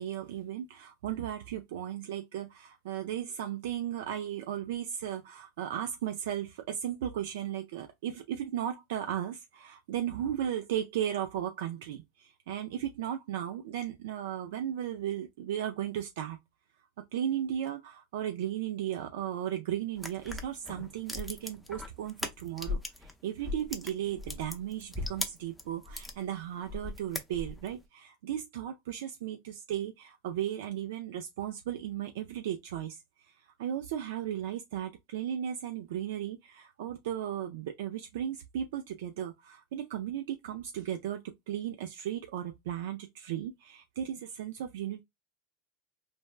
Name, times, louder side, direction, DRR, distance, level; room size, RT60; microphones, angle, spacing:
voice 1, 0.0-16.4 17.0-45.0, right 10 dB, 75° right, 0.3 m, -36 dB
sound 1, 20.0-23.1 23.4-26.2 26.6-27.7, left 2 dB, 5° left, 0.5 m, -38 dB
3.2 x 2.1 x 2.4 m
supercardioid pair, 120°, 0 cm